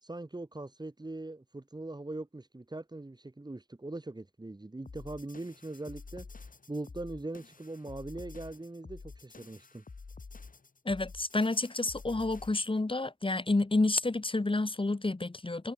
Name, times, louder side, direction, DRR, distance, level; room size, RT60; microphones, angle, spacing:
voice 1, 0.0-9.8, right 2 dB, 30° right, 2.8 m, -41 dB
sound 1, 4.9-12.8, left 4 dB, 65° left, 5.9 m, -49 dB
voice 2, 10.8-15.7, left 2 dB, 35° left, 5.0 m, -29 dB
wide cardioid pair, 90°, 15 cm